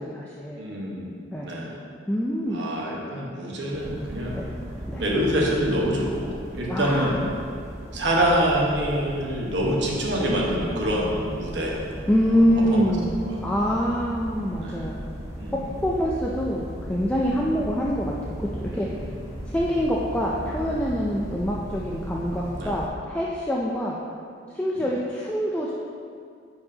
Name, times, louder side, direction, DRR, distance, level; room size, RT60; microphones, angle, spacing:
voice 1, 0.0-0.6 1.3-1.5 2.1-2.6 4.3-4.5 4.9-5.0 6.7-7.1 12.1-13.1 13.4-15.0 15.8-18.1 18.4-18.9 19.5-24.0 24.5-25.7, equal, 10° left, -4 dB, 0.4 m, -25 dB
voice 2, 0.6-1.8 2.5-4.4 5.0-7.2 7.9-11.8 12.2-12.4 12.7-12.9 13.2-13.4 14.6-14.9 15.4-15.6 17.2-17.4 18.7-18.9 22.6-22.7 24.7-24.9, equal, 75° right, -3 dB, 1.2 m, -26 dB
sound 1, 3.7-22.9, equal, 15° right, 1.3 m, -37 dB
10.0 x 4.7 x 2.8 m, 2.3 s
head